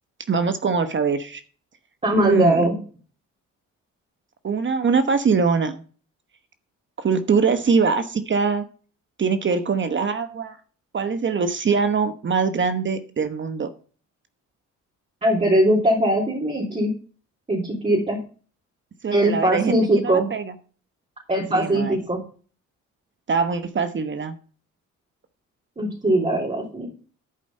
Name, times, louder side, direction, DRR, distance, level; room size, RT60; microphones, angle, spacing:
voice 1, 0.3-1.4 2.2-2.7 4.4-5.8 7.0-8.6 9.2-10.6 10.9-13.7 19.0-19.7 20.0-20.5 21.5-22.0 23.3-24.3, right 5 dB, 40° right, 10 dB, 1.0 m, -22 dB
voice 2, 2.0-2.8 15.2-16.9 17.5-18.2 19.1-20.3 21.3-22.2 25.8-26.9, right 1 dB, 20° right, -3 dB, 3.4 m, -20 dB
11.5 x 5.0 x 5.4 m, 0.40 s
cardioid pair, 90°, 30 cm